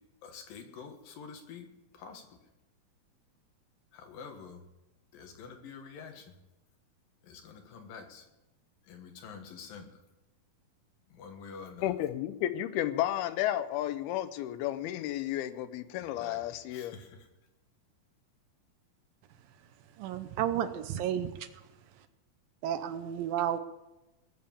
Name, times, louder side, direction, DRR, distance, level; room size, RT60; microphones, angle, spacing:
voice 1, 0.2-1.7 1.9-2.2 3.9-4.6 5.1-6.3 7.2-8.3 8.8-9.9 11.1-11.9 16.0-16.4 16.7-17.3, left 6 dB, 70° left, 4 dB, 3.1 m, -47 dB
voice 2, 11.8-17.0, left 13 dB, 90° left, 12 dB, 2.7 m, -32 dB
voice 3, 20.0-21.5 22.6-23.6, right 10 dB, 75° right, 10 dB, 2.3 m, -32 dB
20.5 x 7.0 x 7.1 m, 1.0 s
omnidirectional pair, 4.4 m